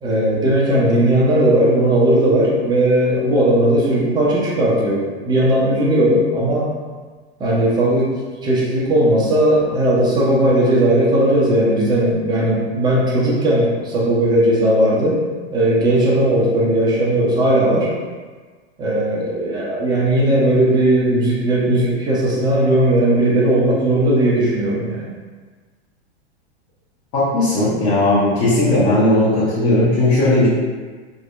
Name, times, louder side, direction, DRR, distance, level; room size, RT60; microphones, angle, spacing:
voice 1, 0.0-6.7 7.4-8.1 8.4-15.2 15.5-17.9 18.8-25.0, right 1 dB, 15° right, -5 dB, 0.5 m, -17 dB
voice 2, 27.1-30.5, left 1 dB, 40° left, -12 dB, 0.9 m, -16 dB
2.6 x 2.0 x 2.3 m, 1.4 s
figure-of-eight pair, 100°, 33 cm